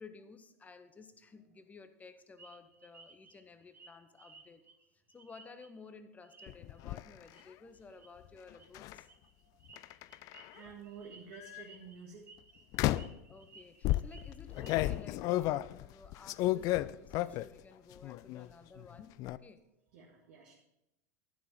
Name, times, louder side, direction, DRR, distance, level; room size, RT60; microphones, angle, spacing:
voice 1, 0.0-4.7 5.1-9.1 13.3-19.6, left 4 dB, 15° left, 10 dB, 1.0 m, -54 dB
sound 1, 2.4-5.9 6.2-6.8 7.3-7.5 7.8-8.1 8.6-15.1, right 4 dB, 20° right, 1.2 m, -59 dB
sound 2, 6.5-7.0 8.7-9.0 9.8-10.6 11.3-11.6 12.7-13.2 13.8-17.6 18.0-18.5 18.8-19.4, left 16 dB, 40° left, 0.3 m, -33 dB
voice 2, 10.5-12.3 19.9-20.5, right 5 dB, 55° right, -2 dB, 1.8 m, -50 dB
11.5 x 6.4 x 5.6 m, 0.87 s
figure-of-eight pair, 85°, 9 cm